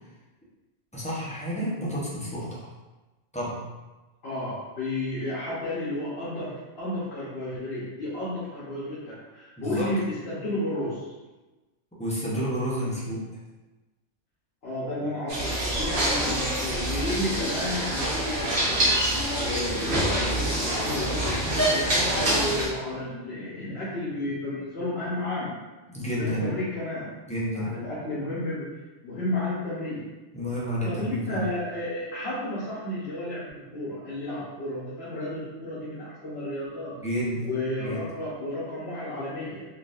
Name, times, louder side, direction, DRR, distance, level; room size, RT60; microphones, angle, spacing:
voice 1, 0.9-2.7 3.3-3.6 9.6-9.9 12.0-13.3 25.9-26.5 27.3-27.7 30.3-31.5 37.0-37.5 37.8-38.0, equal, 5° left, -8 dB, 0.6 m, -30 dB
voice 2, 4.2-11.1 12.9-13.0 14.6-18.8 19.4-25.5 26.2-27.1 27.5-28.7 29.0-30.0 30.8-36.9 37.4-39.7, left 1 dB, 60° left, -9 dB, 1.1 m, -32 dB
sound 1, 15.3-22.7, right 1 dB, 50° right, 1.0 m, -26 dB
3.8 x 2.5 x 2.5 m, 1.1 s
omnidirectional pair, 1.2 m